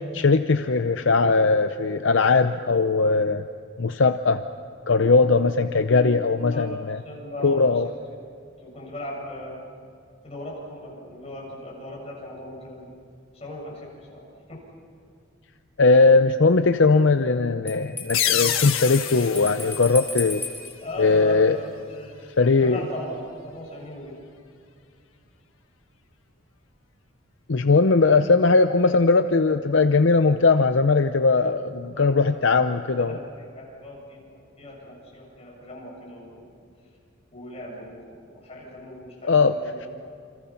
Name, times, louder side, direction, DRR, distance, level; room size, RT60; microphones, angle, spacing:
voice 1, 0.1-3.4 3.8-4.4 4.9-7.0 7.4-7.9 15.8-20.4 21.0-21.6 22.4-22.8 27.5-33.2 39.2-39.5, left 3 dB, 65° left, 9 dB, 0.6 m, -19 dB
voice 2, 6.5-7.9 8.6-9.6 10.2-12.9 13.3-14.2 14.5-14.6 20.8-22.2 22.6-24.1 31.9-32.6 33.1-36.5 37.3-39.9, left 1 dB, 30° left, -3 dB, 7.2 m, -38 dB
Bell, 17.7-20.8, left 4 dB, 10° left, 2.7 m, -35 dB
sound 1, 18.1-20.7, left 10 dB, 80° left, 1.5 m, -27 dB
28.5 x 26.0 x 5.8 m, 2.3 s
head